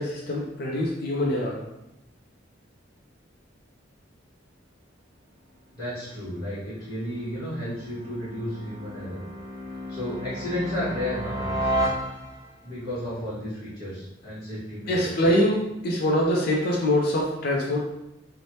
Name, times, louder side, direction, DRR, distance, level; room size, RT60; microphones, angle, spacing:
voice 1, 0.0-1.6 14.9-18.1, left 1 dB, 50° left, -2 dB, 0.4 m, -24 dB
voice 2, 5.7-9.2 9.9-11.7 12.6-15.4, left 1 dB, 20° left, -14 dB, 1.1 m, -33 dB
sound 1, 6.2-12.6, right 1 dB, 15° right, 0.8 m, -33 dB
3.1 x 2.1 x 2.7 m, 0.89 s
head